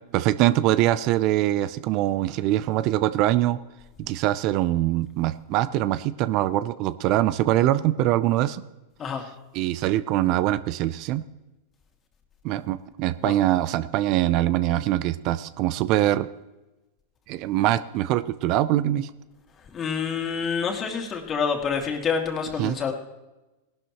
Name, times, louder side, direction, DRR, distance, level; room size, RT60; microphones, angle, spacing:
voice 1, 0.1-3.6 4.0-8.6 9.5-11.2 12.4-16.3 17.3-19.1 22.6-22.8, right 14 dB, 50° right, 14 dB, 0.5 m, -23 dB
voice 2, 19.7-22.9, left 6 dB, 30° left, 2 dB, 2.4 m, -27 dB
18.5 x 12.0 x 3.0 m, 1.0 s
hypercardioid pair, 105°, 0 cm